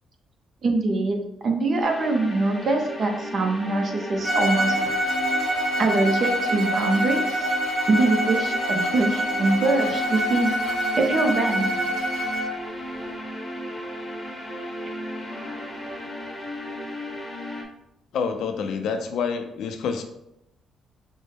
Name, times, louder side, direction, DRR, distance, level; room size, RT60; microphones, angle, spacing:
voice 1, 0.6-4.7 5.8-7.5 7.9-10.5 11.0-11.7, right 2 dB, 50° right, 3 dB, 0.7 m, -23 dB
sound 1, 1.8-17.6, equal, ahead, 1.0 m, -35 dB
Bowed string instrument, 4.2-12.6, equal, 25° right, 1.2 m, -25 dB
voice 2, 18.1-20.0, left 6 dB, 75° left, 6 dB, 0.4 m, -27 dB
5.2 x 2.1 x 3.3 m, 0.83 s
cardioid pair, 90°, 0 cm